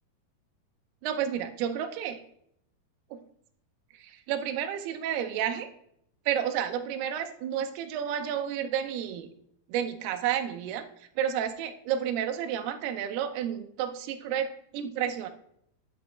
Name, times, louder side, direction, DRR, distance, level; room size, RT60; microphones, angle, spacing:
voice 1, 1.0-2.2 3.1-3.2 4.0-5.7 6.3-9.3 9.7-15.3, right 9 dB, 90° right, 7 dB, 2.7 m, -31 dB
10.5 x 5.0 x 3.3 m, 0.70 s
omnidirectional pair, 4.5 m